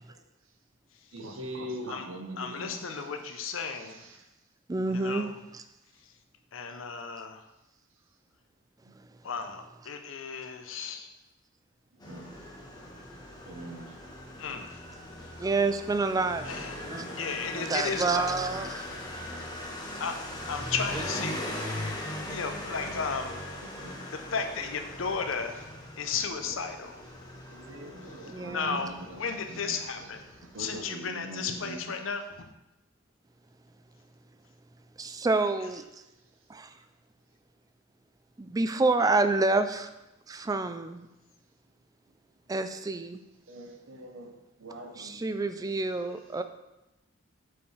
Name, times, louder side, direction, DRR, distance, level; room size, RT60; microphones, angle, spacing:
voice 1, 1.1-4.2 8.8-8.9 12.1-12.4 13.4-14.0 17.0-17.3 17.6-17.7 22.6-22.9 23.6-24.0 24.2-24.3 26.4-26.8 27.5-29.2 29.5-30.1 30.4-31.8 43.5-45.7, right 1 dB, 70° right, 4 dB, 0.9 m, -43 dB
voice 2, 2.4-4.1 4.9-5.3 6.5-7.5 9.2-11.1 14.4-14.8 16.4-16.8 17.2-18.3 20.0-21.4 22.1-23.4 24.1-25.7 26.0-27.0 28.5-30.3 30.6-32.4, left 5 dB, 70° left, 7 dB, 0.7 m, -34 dB
voice 3, 4.7-5.6 15.4-16.5 16.9-17.1 17.5-18.9 20.7-21.0 27.9-28.8 35.0-35.8 36.5-36.7 38.4-39.9 40.3-41.1 42.5-43.2 45.0-46.4, right 3 dB, 20° right, 9 dB, 0.3 m, -28 dB
Motorcycle, 12.0-30.8, left 1 dB, 20° left, 1.1 m, -40 dB
6.8 x 5.5 x 3.3 m, 0.94 s
head